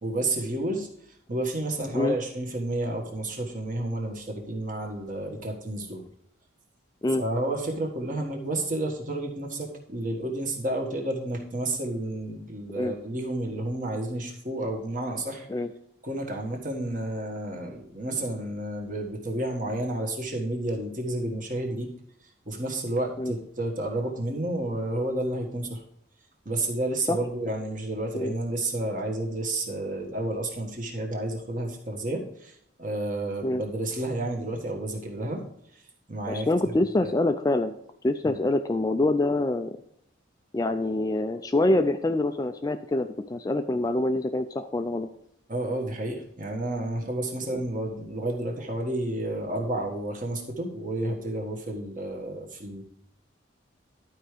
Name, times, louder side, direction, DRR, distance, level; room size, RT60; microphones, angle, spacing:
voice 1, 0.0-0.9 1.3-6.0 7.2-15.5 16.0-21.9 22.4-25.8 26.4-35.4 35.7-35.8 36.1-36.5 37.0-37.1 38.2-38.4 45.5-52.8, right 1 dB, 40° right, 1 dB, 1.5 m, -31 dB
voice 2, 36.3-37.7 38.0-39.8 40.5-45.1, left 2 dB, 20° left, 8 dB, 0.3 m, -25 dB
11.5 x 4.7 x 5.0 m, 0.73 s
head